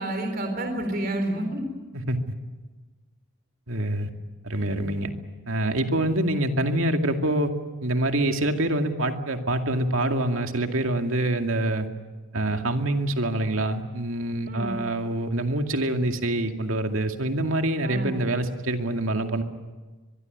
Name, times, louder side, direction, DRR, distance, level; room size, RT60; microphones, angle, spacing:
voice 1, 0.0-1.6 14.5-14.8 17.8-18.2, right 1 dB, 45° right, 5 dB, 3.8 m, -29 dB
voice 2, 1.9-2.3 3.7-4.1 4.4-5.1 5.5-7.5 7.8-11.9 12.3-19.4, right 1 dB, 75° right, 5 dB, 2.3 m, -25 dB
23.5 x 23.0 x 9.4 m, 1.3 s
head